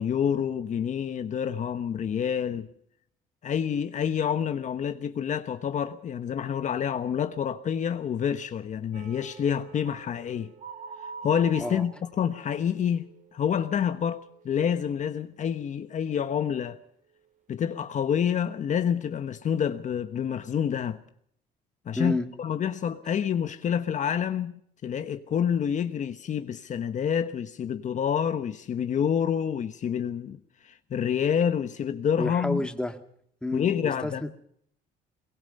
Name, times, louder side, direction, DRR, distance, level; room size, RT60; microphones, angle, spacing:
voice 1, 0.0-2.7 3.4-10.5 11.2-16.8 17.5-21.0 21.9-22.1 22.4-24.5 24.8-30.4 30.6-32.6 33.5-34.2, left 8 dB, 45° left, 1.2 m, -28 dB
sound 1, 8.9-14.7 15.0-15.3 15.7-16.0, right 6 dB, 50° right, 3.6 m, -46 dB
voice 2, 32.2-33.0 33.4-34.3, left 1 dB, 5° left, 2.1 m, -30 dB
22.5 x 22.0 x 5.4 m
cardioid pair, 110°, 17 cm